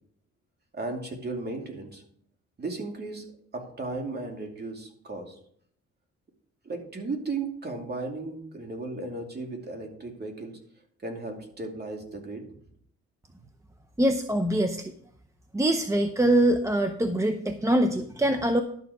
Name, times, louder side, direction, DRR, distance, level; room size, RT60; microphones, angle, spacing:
voice 1, 0.7-2.0 2.6-3.2 3.5-5.4 6.6-10.6 11.0-12.4, right 3 dB, 35° right, 2 dB, 2.6 m, -35 dB
voice 2, 14.0-14.9 15.5-18.6, right 1 dB, 10° right, 7 dB, 0.7 m, -24 dB
12.0 x 7.0 x 4.9 m, 0.63 s
cardioid pair, 100°, 29 cm